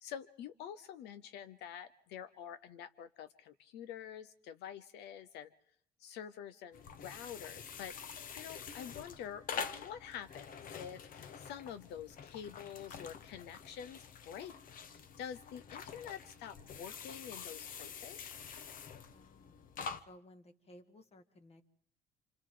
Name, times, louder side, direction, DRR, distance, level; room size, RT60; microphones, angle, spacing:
voice 1, 0.0-5.5 6.0-8.0 8.4-14.5 14.9-18.2, left 9 dB, 85° left, 12 dB, 0.8 m, -47 dB
sound 1, 6.7-20.0, left 6 dB, 55° left, 1.1 m, -47 dB
voice 2, 19.1-19.7 20.1-21.6, left 1 dB, 35° left, 8 dB, 1.9 m, -58 dB
30.0 x 27.0 x 3.8 m, 0.66 s
cardioid pair, 110°, 17 cm